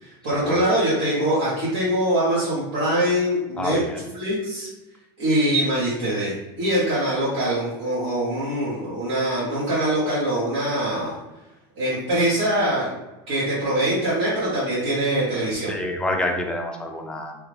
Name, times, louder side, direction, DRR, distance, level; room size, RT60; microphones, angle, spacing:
voice 1, 0.0-3.8 4.1-4.7 5.2-11.1 11.8-12.9 13.3-15.7, right 1 dB, 80° right, -9 dB, 1.3 m, -23 dB
voice 2, 3.6-4.0 15.7-17.4, left 1 dB, 5° left, 2 dB, 0.4 m, -27 dB
3.3 x 2.3 x 3.3 m, 1.0 s
supercardioid pair, 140°, 13 cm